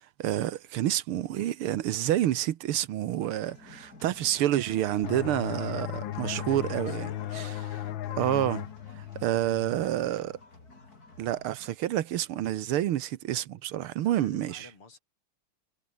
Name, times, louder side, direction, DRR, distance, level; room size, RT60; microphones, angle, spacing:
voice 1, 0.2-7.5 8.2-8.7 9.2-10.4 11.2-14.7, right 12 dB, 80° right, 1.9 m, -28 dB
sound 1, 3.2-11.7, left 3 dB, 45° left, 5.2 m, -52 dB
sound 2, 5.0-10.4, left 12 dB, 70° left, 1.6 m, -36 dB
voice 2, 6.7-7.5 14.0-15.0, left 4 dB, 85° left, 5.8 m, -52 dB
omnidirectional pair, 2.4 m